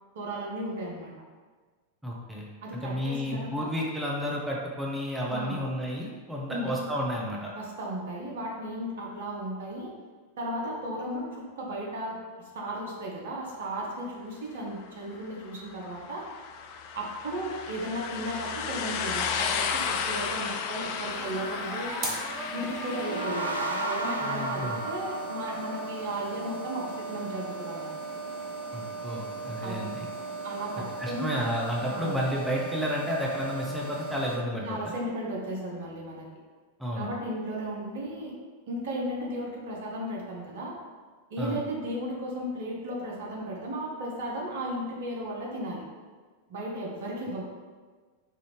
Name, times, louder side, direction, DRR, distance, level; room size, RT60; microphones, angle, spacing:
voice 1, 0.1-1.1 2.6-3.7 5.3-5.6 6.5-6.7 7.5-9.9 10.4-12.2 12.5-16.2 16.9-22.0 22.5-27.9 29.6-29.9 30.4-31.3 31.9-32.2 34.6-36.3 37.0-38.3 38.7-40.7 41.3-45.8 46.5-47.5, right 1 dB, 60° right, -2 dB, 0.9 m, -35 dB
voice 2, 2.0-7.5 24.2-24.8 28.7-30.1 31.0-34.7 36.8-37.1 41.4-41.6, equal, 5° right, -3 dB, 0.6 m, -31 dB
sound 1, 15.4-23.6, left 6 dB, 45° left, 0.3 m, -33 dB
sound 2, 20.8-34.3, right 3 dB, 35° right, 0.9 m, -37 dB
sound 3, 22.7-26.2, right 2 dB, 85° right, 0.4 m, -33 dB
4.8 x 2.6 x 3.2 m, 1.5 s
figure-of-eight pair, 90°, 0 cm